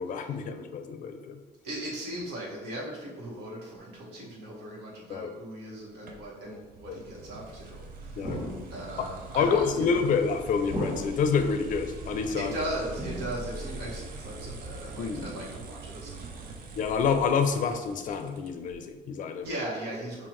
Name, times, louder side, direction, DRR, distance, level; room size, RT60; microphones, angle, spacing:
voice 1, 0.0-1.4 5.1-5.3 6.9-7.0 8.2-8.4 9.0-9.1 9.3-12.5 15.0-15.2 16.8-19.5, left 5 dB, 50° left, 7 dB, 0.5 m, -27 dB
voice 2, 1.6-8.4 8.7-10.0 12.4-16.4 19.4-20.3, right 1 dB, 80° right, -4 dB, 1.4 m, -38 dB
sound 1, 6.1-18.8, right 4 dB, 55° right, 0.6 m, -43 dB
sound 2, 8.2-9.0 10.7-11.5 12.9-13.7 15.1-15.7 17.3-17.4, left 1 dB, 10° right, 1.2 m, -37 dB
5.6 x 2.4 x 3.1 m, 1.2 s
cardioid pair, 110°, 17 cm